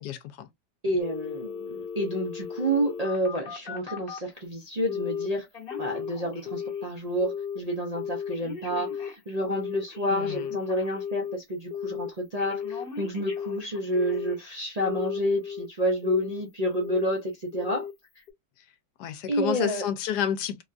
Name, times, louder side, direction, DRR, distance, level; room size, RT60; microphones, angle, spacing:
voice 1, 0.0-0.5 10.1-10.6 19.0-20.6, left 9 dB, 80° left, 1.2 m, -30 dB
voice 2, 0.8-5.5 5.8-17.9 19.3-19.9, equal, 75° right, 0.3 m, -29 dB
Telephone, 1.0-4.3 4.9-5.3 5.5-6.9 7.2-7.6 8.0-11.3 11.7-12.1 12.4-14.4 14.8-15.7 16.0-16.4 16.8-17.2 17.5-17.9 18.3-18.4, left 7 dB, 45° left, 0.9 m, -35 dB
3.3 x 2.3 x 2.5 m
omnidirectional pair, 1.8 m